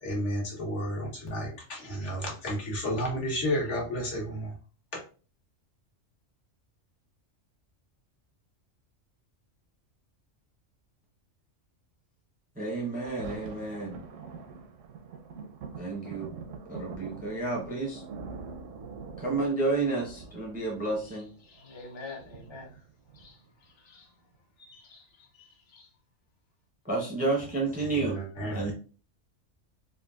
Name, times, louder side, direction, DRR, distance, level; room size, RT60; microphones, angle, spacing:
voice 1, 0.0-4.5 27.8-28.7, equal, 65° left, 1.4 m, -32 dB
voice 2, 12.6-14.0 15.8-16.3 16.7-18.0 19.2-21.3 26.8-28.7, right 3 dB, 10° right, 0.5 m, -31 dB
Thunder, 12.7-23.7 24.3-24.4, right 5 dB, 80° right, 0.9 m, -44 dB
voice 3, 21.0-22.8 23.1-24.1 24.6-25.9 28.1-28.2 28.5-28.7, left 3 dB, 35° left, 0.4 m, -48 dB
3.7 x 2.3 x 2.3 m
omnidirectional pair, 1.3 m